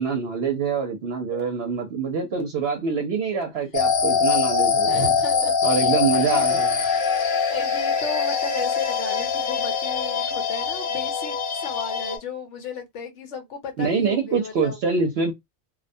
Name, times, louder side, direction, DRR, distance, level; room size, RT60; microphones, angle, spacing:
voice 1, 0.0-5.1 5.6-6.7 13.8-15.3, right 5 dB, 65° right, 0.8 m, -25 dB
sound 1, 1.3-1.4 2.3-2.4 3.3-3.4 4.3-4.4 5.3-5.4 6.0-6.1 6.5-6.6 7.0-10.2, left 12 dB, 15° left, 0.4 m, -36 dB
sound 2, 3.7-12.2, left 5 dB, 50° left, 0.7 m, -23 dB
voice 2, 4.9-6.5 7.5-14.8, left 4 dB, 80° left, 1.1 m, -35 dB
2.3 x 2.1 x 2.5 m
omnidirectional pair, 1.2 m